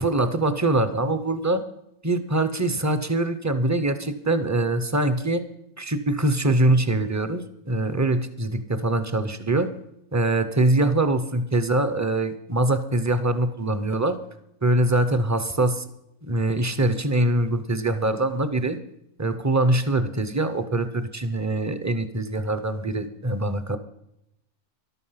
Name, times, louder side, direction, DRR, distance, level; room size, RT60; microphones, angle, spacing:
voice 1, 0.0-1.6 2.0-5.4 5.8-9.7 10.1-14.2 14.6-15.9 16.3-18.8 19.2-23.8, right 2 dB, 20° right, 11 dB, 0.5 m, -23 dB
13.5 x 12.0 x 5.8 m, 0.82 s
omnidirectional pair, 1.5 m